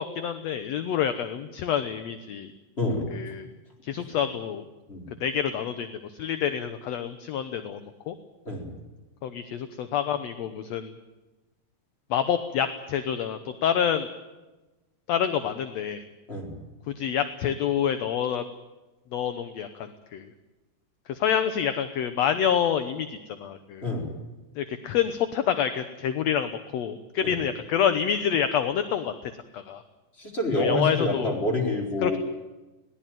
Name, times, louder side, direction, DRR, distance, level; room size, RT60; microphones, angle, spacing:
voice 1, 0.0-2.5 3.1-3.5 3.8-4.7 5.2-7.8 8.1-8.2 9.2-10.9 12.1-14.1 15.1-16.1 16.9-18.4 19.1-20.3 21.1-23.8 24.6-29.1 29.5-29.8 30.6-31.3 32.0-32.2, left 8 dB, 65° left, 10 dB, 1.9 m, -27 dB
voice 2, 2.8-3.1 4.0-4.1 4.9-5.1 8.4-8.7 16.3-16.5 23.8-24.1 27.2-27.4 30.2-32.2, left 1 dB, 20° left, 1 dB, 4.5 m, -27 dB
21.5 x 18.0 x 9.2 m, 1.1 s
omnidirectional pair, 3.6 m